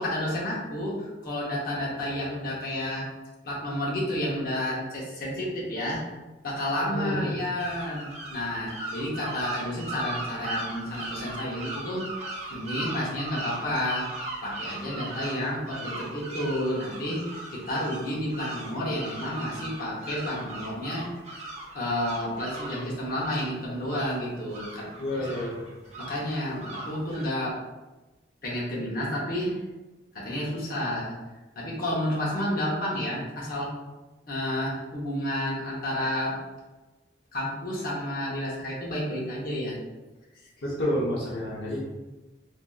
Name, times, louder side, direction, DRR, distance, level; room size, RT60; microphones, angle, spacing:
voice 1, 0.0-3.1 3.4-6.0 6.4-12.2 12.5-14.1 14.4-17.2 17.5-21.1 21.7-25.3 26.0-27.6 28.4-29.6 30.1-31.2 31.5-33.7 34.3-36.4 37.3-39.9, left 1 dB, 55° left, -5 dB, 0.9 m, -30 dB
voice 2, 6.9-7.4 25.0-25.6 40.6-41.8, left 1 dB, 85° left, -5 dB, 0.7 m, -29 dB
sound 1, 7.6-27.3, right 2 dB, 40° right, 0.6 m, -39 dB
3.5 x 2.6 x 2.3 m, 1.1 s
head